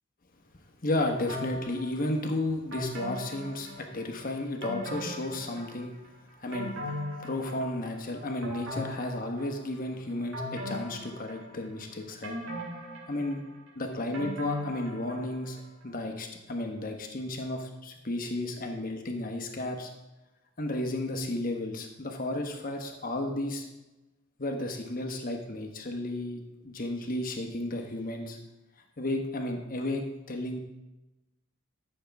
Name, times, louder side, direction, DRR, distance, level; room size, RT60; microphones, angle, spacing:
voice 1, 0.8-5.9 6.4-6.7 7.2-12.4 13.1-13.4 13.8-15.6 15.8-19.9 20.6-23.7 24.4-28.4 29.0-30.6, left 1 dB, 40° left, 4 dB, 1.2 m, -33 dB
sound 1, 1.3-2.1 2.7-4.2 4.6-5.9 6.3-8.0 8.4-9.8 10.3-11.8 12.2-15.5 15.8-15.9, left 1 dB, 65° right, 2.8 m, -39 dB
13.0 x 6.5 x 3.5 m, 1.0 s
head